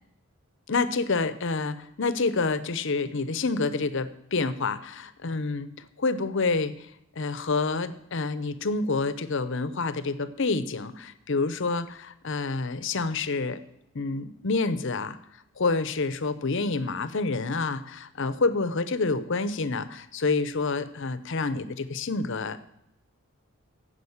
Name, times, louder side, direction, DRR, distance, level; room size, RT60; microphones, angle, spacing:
voice 1, 0.7-5.7 6.0-6.9 7.2-13.6 13.9-15.2 15.6-22.6, left 3 dB, 55° left, 13 dB, 0.7 m, -28 dB
14.5 x 5.2 x 7.1 m, 0.81 s
head